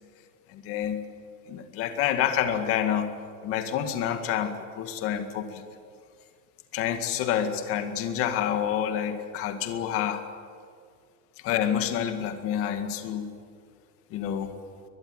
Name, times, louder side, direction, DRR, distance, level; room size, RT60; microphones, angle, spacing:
voice 1, 0.5-1.0 1.5-3.1 3.4-5.6 6.7-10.2 11.4-13.2 14.1-14.5, left 9 dB, 30° left, 7 dB, 2.0 m, -28 dB
22.5 x 21.5 x 9.9 m, 2.1 s
supercardioid pair, 175°, 44 cm